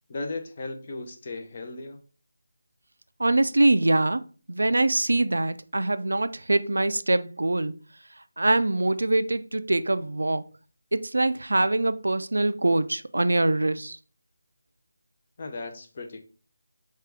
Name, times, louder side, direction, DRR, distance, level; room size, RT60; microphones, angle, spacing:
voice 1, 0.1-2.0 15.4-16.3, left 2 dB, 40° left, 0.6 m, -36 dB
voice 2, 3.2-4.2 4.5-7.7 8.4-10.4 10.9-14.0, right 2 dB, 80° right, 0.3 m, -23 dB
4.7 x 2.4 x 3.4 m
figure-of-eight pair, 165°, 0 cm